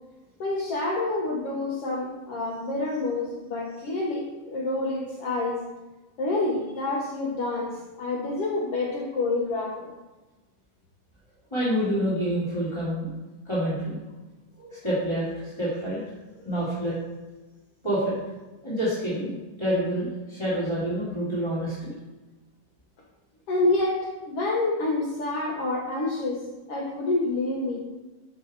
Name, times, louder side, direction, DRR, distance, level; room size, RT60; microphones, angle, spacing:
voice 1, 0.4-5.6 6.2-9.9 23.5-27.8, left 2 dB, 70° left, -1 dB, 1.4 m, -28 dB
voice 2, 11.5-13.1 13.4-14.0 14.6-16.0 16.3-17.0 17.8-18.2 18.6-21.9, equal, 10° left, -11 dB, 2.2 m, -27 dB
12.5 x 5.7 x 4.3 m, 1.1 s
omnidirectional pair, 4.3 m